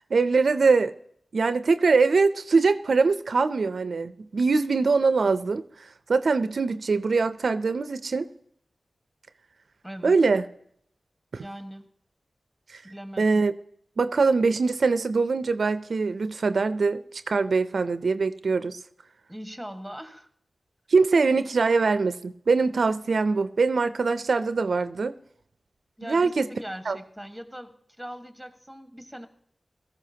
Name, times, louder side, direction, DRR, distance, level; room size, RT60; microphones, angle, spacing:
voice 1, 0.1-1.0 1.3-8.3 10.0-10.4 11.3-11.5 12.7-12.8 13.2-13.5 14.0-18.8 20.9-25.1 26.0-26.5 26.9-27.0, right 4 dB, 75° right, 12 dB, 0.4 m, -23 dB
voice 2, 9.8-10.2 11.4-11.9 12.8-13.4 19.3-20.3 26.0-29.3, equal, ahead, 7 dB, 1.4 m, -40 dB
17.5 x 14.0 x 2.8 m, 0.68 s
cardioid pair, 55°, 0 cm